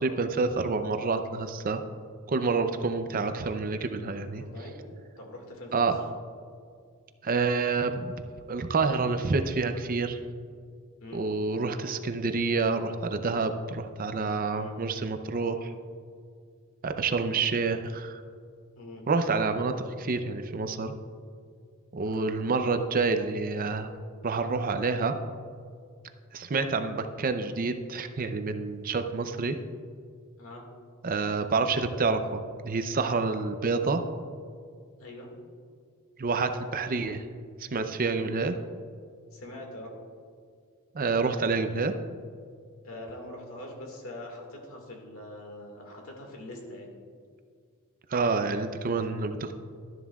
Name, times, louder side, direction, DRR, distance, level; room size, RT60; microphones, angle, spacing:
voice 1, 0.0-1.8 2.3-4.4 5.7-6.0 7.2-8.2 8.5-10.2 11.1-15.7 16.8-18.2 19.1-20.9 21.9-23.9 24.2-25.1 26.3-29.6 31.0-34.0 36.2-37.2 37.6-38.5 40.9-41.9 48.1-49.6, right 4 dB, 40° right, 8 dB, 0.5 m, -28 dB
voice 2, 4.3-4.8 5.2-5.9 11.0-11.2 14.5-14.8 18.8-19.0 22.0-22.3 30.4-30.6 35.0-35.3 36.3-36.5 38.1-38.3 39.3-39.9 42.8-46.9, left 1 dB, 65° left, 1 dB, 2.0 m, -43 dB
12.5 x 11.0 x 2.4 m, 2.2 s
head